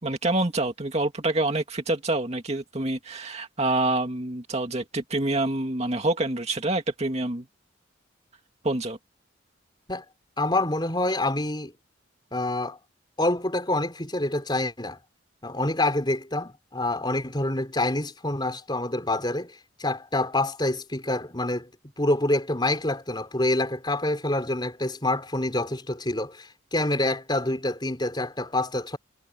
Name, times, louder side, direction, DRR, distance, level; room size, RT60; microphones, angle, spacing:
voice 1, 0.0-7.5 8.6-9.0, right 2 dB, 35° right, 2.3 m, -27 dB
voice 2, 10.4-11.7 12.3-12.8 13.2-15.0 15.4-21.7 22.0-29.0, left 1 dB, 20° left, 4.3 m, -27 dB
head